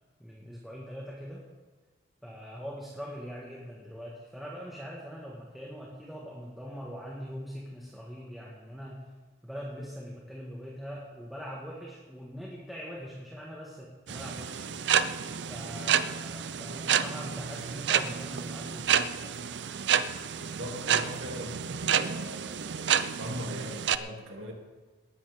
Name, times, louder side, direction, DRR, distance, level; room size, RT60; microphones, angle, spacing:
voice 1, 0.2-1.4 2.2-9.1 9.4-14.7 15.5-19.4, equal, ahead, -5 dB, 1.6 m, -42 dB
sound 1, 14.1-24.0, right 8 dB, 70° right, 0.5 m, -29 dB
voice 2, 20.3-24.5, equal, 90° right, 0 dB, 2.7 m, -41 dB
18.5 x 13.0 x 3.6 m, 1.3 s
head